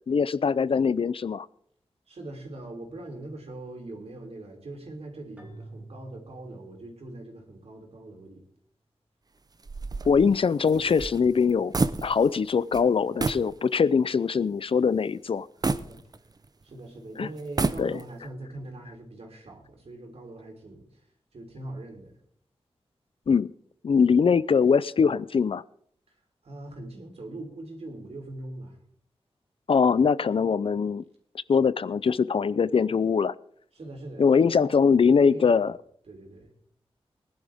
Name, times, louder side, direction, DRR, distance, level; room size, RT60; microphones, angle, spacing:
voice 1, 0.1-1.5 10.1-11.7 12.0-15.5 17.2-17.3 17.8-18.0 23.3-23.5 23.8-25.6 29.7-31.0 31.5-33.3 34.2-35.8, left 6 dB, 60° left, 18 dB, 0.4 m, -22 dB
voice 2, 2.1-8.4 15.7-16.0 16.6-21.0 21.3-22.2 26.1-26.2 26.4-28.8 33.7-35.7 36.1-36.5, right 2 dB, 75° right, 1 dB, 3.4 m, -42 dB
Keyboard (musical), 5.4-7.6, right 2 dB, 15° right, 2.2 m, -48 dB
sound 1, 9.6-12.5 12.7-12.9 13.2-13.5 14.0-14.1 15.6-16.6 17.4-18.3, right 3 dB, 40° right, 0.6 m, -30 dB
20.0 x 11.0 x 3.5 m, 0.64 s
wide cardioid pair, 90°, 11 cm